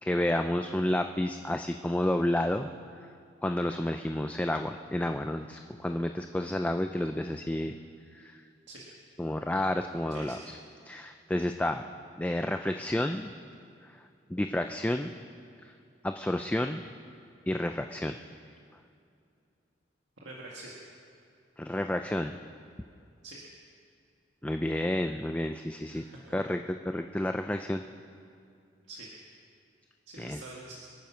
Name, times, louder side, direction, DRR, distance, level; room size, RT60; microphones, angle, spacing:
voice 1, 0.0-2.7 3.4-7.8 8.1-8.3 9.2-10.5 10.9-11.8 12.2-13.3 14.3-15.1 15.6-15.7 16.0-16.8 17.5-18.2 21.6-22.4 24.4-26.0 26.3-27.8 30.2-30.4, left 1 dB, 10° left, 6 dB, 0.3 m, -30 dB
voice 2, 10.1-10.4 20.2-20.7 23.2-23.4 25.9-26.3 28.9-29.3 30.1-30.7, right 2 dB, 85° right, -4 dB, 1.9 m, -45 dB
26.0 x 9.2 x 5.7 m, 2.5 s
head